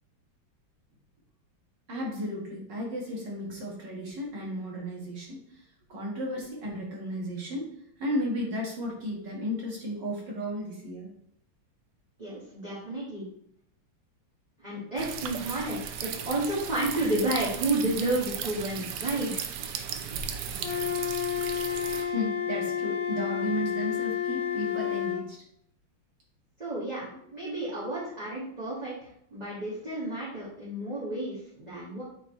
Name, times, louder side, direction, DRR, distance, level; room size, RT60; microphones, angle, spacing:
voice 1, 1.9-5.6 5.9-11.1 22.0-25.4 27.1-27.2 27.8-27.9, equal, 55° right, -3 dB, 2.3 m, -34 dB
voice 2, 12.2-13.3 14.6-19.4 26.6-32.0, right 2 dB, 20° right, -9 dB, 1.7 m, -31 dB
sound 1, 15.0-22.1, right 8 dB, 70° right, 1.0 m, -36 dB
Wind instrument woodwind instrument, 20.6-25.2, left 9 dB, 50° left, 1.3 m, -30 dB
8.6 x 4.1 x 3.2 m, 0.69 s
omnidirectional pair, 2.3 m